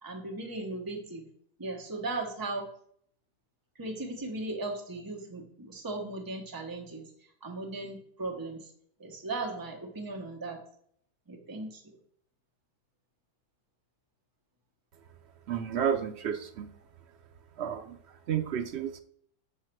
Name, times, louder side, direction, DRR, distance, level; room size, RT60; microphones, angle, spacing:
voice 1, 0.0-1.3 1.6-2.7 3.8-7.0 7.4-8.7 9.0-10.6 11.3-12.0, right 2 dB, 15° right, 2 dB, 0.9 m, -37 dB
voice 2, 15.5-16.7 17.6-18.0 18.3-19.0, right 8 dB, 75° right, 7 dB, 0.6 m, -31 dB
6.4 x 5.5 x 6.0 m, 0.64 s
omnidirectional pair, 1.9 m